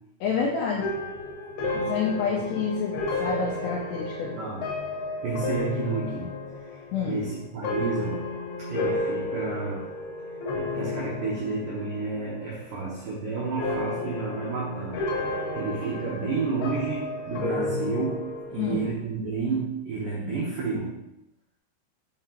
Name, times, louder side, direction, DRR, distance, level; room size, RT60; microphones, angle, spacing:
voice 1, 0.2-0.9 1.7-2.9 3.2-4.4 6.9-7.2 18.6-18.9, left 5 dB, 85° left, -1 dB, 2.4 m, -28 dB
sound 1, 0.8-12.3 12.5-13.1 13.6-18.9, left 2 dB, 70° left, 2.6 m, -32 dB
voice 2, 4.4-4.7 5.2-6.4 7.1-8.3 8.6-9.9 10.5-15.1 15.5-21.0, right 4 dB, 85° right, -5 dB, 1.9 m, -31 dB
5.9 x 5.6 x 2.9 m, 0.86 s
omnidirectional pair, 5.5 m